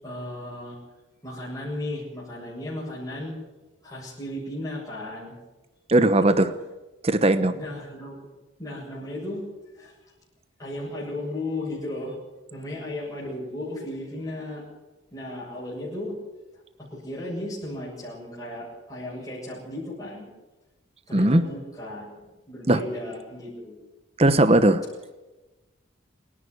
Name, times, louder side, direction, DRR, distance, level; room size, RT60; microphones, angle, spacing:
voice 1, 0.0-0.8 1.2-3.3 3.8-5.3 7.5-8.2 8.6-9.4 9.7-9.9 10.6-12.1 12.5-14.6 15.1-16.2 16.9-20.3 21.1-23.8, left 1 dB, 15° left, -6 dB, 7.6 m, -35 dB
voice 2, 5.9-6.5 7.0-7.6 21.1-21.4 22.7-22.8 24.2-24.8, right 1 dB, 30° right, 12 dB, 1.0 m, -18 dB
27.0 x 11.5 x 9.8 m, 1.1 s
head